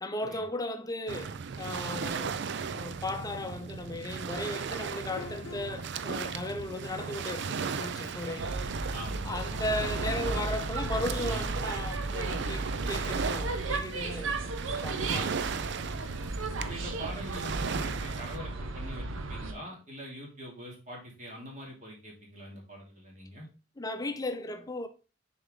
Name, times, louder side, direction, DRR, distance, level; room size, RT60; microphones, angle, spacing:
voice 1, 0.0-2.3 2.7-8.8 9.2-15.5 23.8-24.9, left 1 dB, 20° left, 0.7 m, -36 dB
Waves surf, 1.1-18.4, right 6 dB, 60° right, 0.5 m, -36 dB
sound 1, 4.3-7.2 8.7-8.8, left 3 dB, 85° left, 0.8 m, -47 dB
sound 2, 8.4-19.5, right 3 dB, 80° right, 0.8 m, -35 dB
voice 2, 8.9-9.6 16.1-16.3 16.6-23.5, equal, 40° right, 2.7 m, -44 dB
6.6 x 4.7 x 3.8 m
head